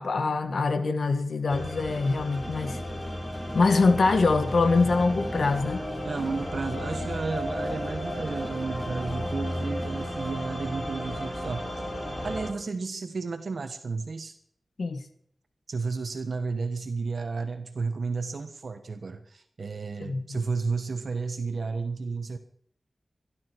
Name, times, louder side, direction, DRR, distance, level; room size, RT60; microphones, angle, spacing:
voice 1, 0.0-2.8 3.5-5.8 14.8-15.0 20.0-20.2, left 3 dB, 80° left, 8 dB, 1.9 m, -24 dB
sound 1, 1.5-12.5, equal, 35° left, 6.2 m, -33 dB
sound 2, 1.9-10.3, equal, 5° right, 4.4 m, -45 dB
voice 2, 6.0-11.7 12.2-14.3 15.7-22.4, right 4 dB, 75° right, 7 dB, 1.3 m, -32 dB
22.5 x 12.0 x 4.7 m, 0.65 s
cardioid pair, 45°, 0 cm